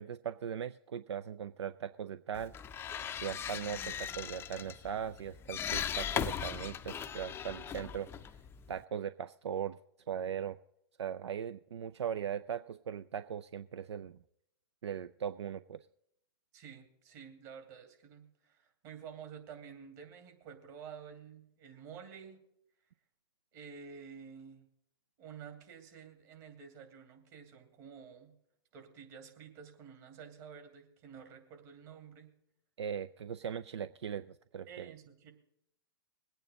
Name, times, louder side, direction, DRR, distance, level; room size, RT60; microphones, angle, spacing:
voice 1, 0.0-2.5 3.2-8.1 8.7-9.8 10.1-10.6 11.0-14.2 14.8-15.8 32.8-34.9, right 8 dB, 85° right, 14 dB, 0.4 m, -39 dB
sound 1, 2.4-8.8, left 8 dB, 15° left, 0.5 m, -39 dB
voice 2, 16.5-22.4 23.5-24.7 25.2-28.3 28.7-32.3 34.7-35.3, right 7 dB, 45° right, 5 dB, 2.7 m, -51 dB
21.5 x 9.0 x 3.8 m, 0.76 s
hypercardioid pair, 125°, 14 cm